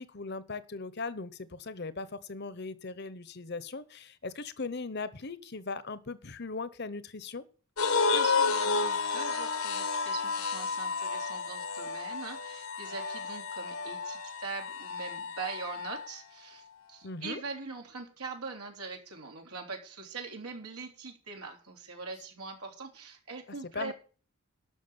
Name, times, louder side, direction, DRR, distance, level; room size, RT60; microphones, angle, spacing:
voice 1, 0.0-7.5 17.0-17.4 23.7-23.9, left 3 dB, 45° left, 15 dB, 0.9 m, -39 dB
sound 1, 7.8-16.2, left 4 dB, 75° left, 1.1 m, -31 dB
voice 2, 8.0-23.9, right 4 dB, 85° right, 3 dB, 3.4 m, -42 dB
12.0 x 6.3 x 8.1 m, 0.39 s
head